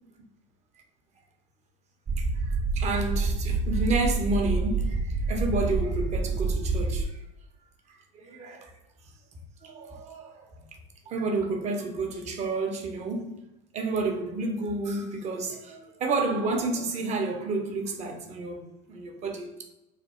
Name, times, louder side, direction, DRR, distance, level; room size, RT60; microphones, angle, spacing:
sound 1, 2.1-7.0, right 3 dB, 20° right, 0.4 m, -27 dB
voice 1, 2.2-7.2 8.1-8.7 9.6-10.4 11.1-13.4 13.7-18.6 18.9-19.6, right 3 dB, 45° right, 0.9 m, -30 dB
3.3 x 2.3 x 4.3 m
hypercardioid pair, 85°, 16 cm